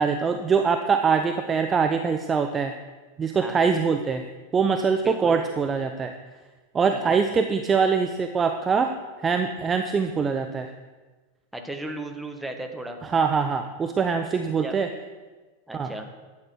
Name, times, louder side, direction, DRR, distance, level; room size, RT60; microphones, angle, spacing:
voice 1, 0.0-2.7 3.2-4.2 4.5-6.1 6.7-8.9 9.2-10.7 13.1-14.9 15.7-15.9, right 5 dB, 20° right, 6 dB, 0.7 m, -23 dB
voice 2, 5.0-5.4 6.8-7.2 11.5-13.0 14.6-14.8 15.7-16.1, right 2 dB, 5° right, 3 dB, 1.4 m, -36 dB
11.5 x 8.6 x 4.7 m, 1.3 s
figure-of-eight pair, 90°, 0 cm